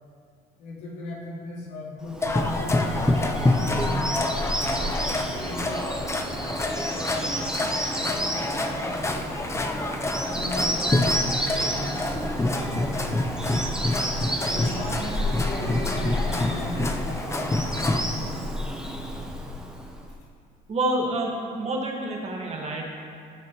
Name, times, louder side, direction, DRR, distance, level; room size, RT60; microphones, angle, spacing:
voice 1, 0.6-5.9 6.6-9.7 10.3-13.0 14.5-18.8, left 2 dB, 85° left, -5 dB, 2.6 m, -38 dB
Bird vocalization bird call bird song, 2.1-20.1, equal, 5° right, 1.0 m, -31 dB
sound 1, 2.2-18.0, left 2 dB, 15° left, 0.7 m, -27 dB
voice 2, 20.7-22.8, right 1 dB, 40° right, -1 dB, 1.7 m, -28 dB
16.0 x 6.1 x 3.1 m, 2.3 s
cardioid pair, 110°, 17 cm